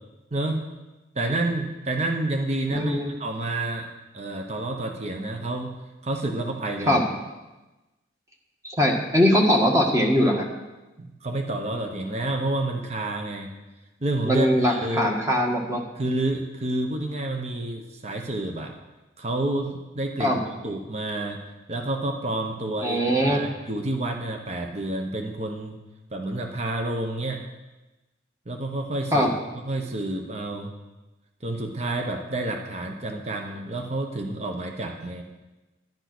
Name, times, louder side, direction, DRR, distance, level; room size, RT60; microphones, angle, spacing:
voice 1, 0.3-0.6 1.1-3.9 4.1-5.7 6.0-7.0 11.0-13.5 14.0-15.1 16.0-18.7 19.2-20.4 20.6-21.4 21.7-25.8 26.1-27.4 28.5-29.3 29.6-30.7 31.4-35.2, right 2 dB, 35° right, 3 dB, 1.1 m, -29 dB
voice 2, 2.7-3.1 6.9-7.0 8.6-10.5 14.2-15.8 20.2-20.4 22.8-23.4 29.1-29.3, equal, 15° right, 1 dB, 1.7 m, -21 dB
11.0 x 10.5 x 6.2 m, 1.1 s
head